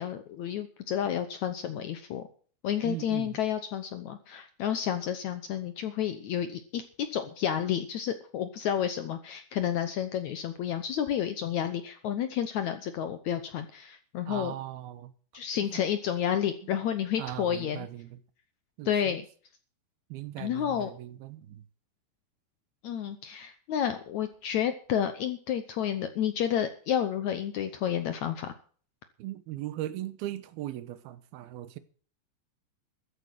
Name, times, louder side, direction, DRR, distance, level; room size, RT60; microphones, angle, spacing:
voice 1, 0.0-2.2 2.6-6.8 7.1-14.5 15.3-17.9 18.9-19.2 20.4-20.9 22.8-28.6, left 9 dB, 70° left, 1.8 m, -30 dB
voice 2, 2.8-3.4 14.3-15.1 17.2-18.2 18.8-19.2 20.1-21.6 29.2-31.8, right 14 dB, 85° right, 2.9 m, -38 dB
14.0 x 8.4 x 7.7 m
omnidirectional pair, 4.3 m